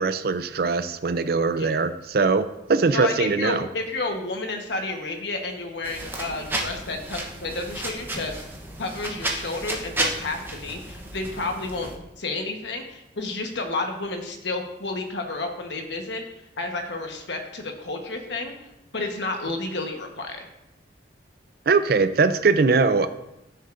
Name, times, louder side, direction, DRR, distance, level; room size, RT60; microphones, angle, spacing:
voice 1, 0.0-3.7 21.7-23.1, right 4 dB, 55° right, 11 dB, 0.4 m, -21 dB
voice 2, 2.9-8.4 8.8-16.2 16.6-18.5 18.9-20.4, left 2 dB, 70° left, 3 dB, 1.2 m, -31 dB
sound 1, 5.8-12.0, right 2 dB, 10° right, 0.9 m, -32 dB
13.5 x 6.5 x 2.6 m, 0.89 s
head